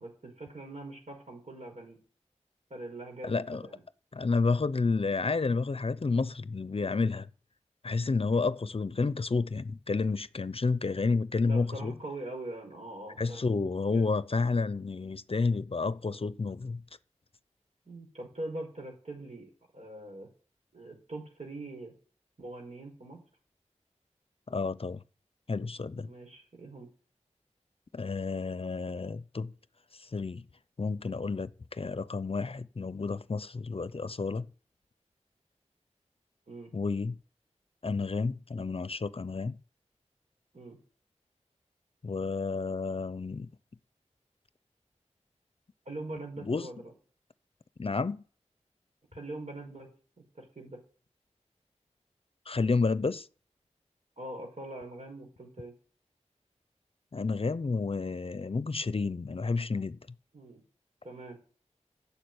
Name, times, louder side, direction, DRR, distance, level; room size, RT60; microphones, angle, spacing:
voice 1, 0.0-2.0 2.7-3.8 11.4-13.5 13.9-14.1 17.9-20.3 20.7-21.9 22.4-23.2 26.0-26.9 36.5-36.7 40.5-40.8 45.9-46.9 49.1-49.9 50.3-50.8 54.2-55.7 60.3-60.6 61.0-61.4, right 2 dB, 70° right, 5.4 m, -42 dB
voice 2, 3.2-3.6 4.1-7.3 7.8-11.9 13.2-16.8 24.5-25.0 25.5-26.1 27.9-29.5 29.9-30.5 30.8-34.4 36.7-37.2 37.8-39.6 42.0-43.5 46.4-46.7 47.8-48.2 52.5-53.3 57.1-60.0, left 4 dB, 50° left, 0.6 m, -30 dB
11.5 x 7.1 x 9.5 m
wide cardioid pair, 60°, 12 cm